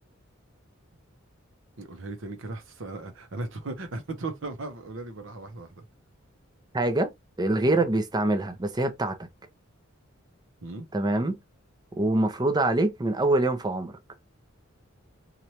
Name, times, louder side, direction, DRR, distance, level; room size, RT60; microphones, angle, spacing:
voice 1, 1.8-5.8 7.6-7.8 10.6-10.9, right 2 dB, 65° right, 0.8 m, -37 dB
voice 2, 6.7-7.1 7.4-9.2 10.9-11.4 12.0-13.9, right 2 dB, 20° right, 0.6 m, -24 dB
3.1 x 2.4 x 2.8 m
head